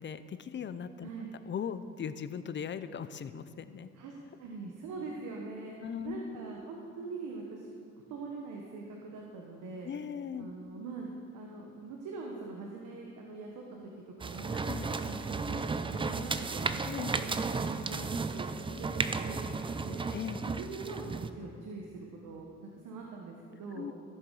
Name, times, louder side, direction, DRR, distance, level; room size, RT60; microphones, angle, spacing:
voice 1, 0.0-1.1 1.5-3.9 5.8-6.4 9.8-10.5 14.7-14.9 16.8-17.1 20.1-20.4 23.7-23.9, left 7 dB, 40° left, 12 dB, 0.5 m, -38 dB
voice 2, 4.4-5.7 6.0-7.7 8.1-9.9 10.4-13.9 14.2-14.6 15.1-20.0 20.4-23.9, right 3 dB, 85° right, -1 dB, 1.2 m, -43 dB
sound 1, 14.2-21.3, right 4 dB, 15° right, 0.4 m, -34 dB
15.0 x 6.6 x 4.8 m, 2.4 s
cardioid pair, 90°, 30 cm